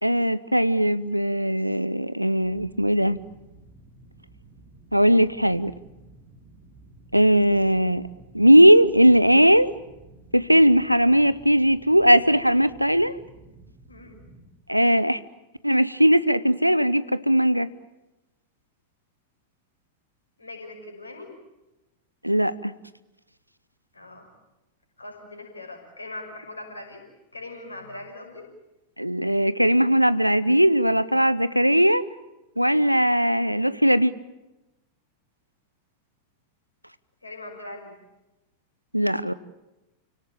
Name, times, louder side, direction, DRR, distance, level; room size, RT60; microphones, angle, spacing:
voice 1, 0.0-3.2 4.9-5.7 7.1-8.0 8.3-9.7 10.3-13.2 14.7-15.2 15.6-17.7 22.2-22.7 29.0-32.0 32.6-34.1 38.9-39.3, equal, 90° right, 17 dB, 0.8 m, -19 dB
sound 1, 2.4-14.5, right 2 dB, 40° right, 5.5 m, -52 dB
voice 2, 13.9-14.2 20.4-21.3 23.9-24.3 25.0-27.0 27.3-28.5 37.2-38.0, left 2 dB, 80° left, 3 dB, 5.9 m, -40 dB
29.0 x 18.0 x 8.8 m, 1.0 s
figure-of-eight pair, 90°, 0 cm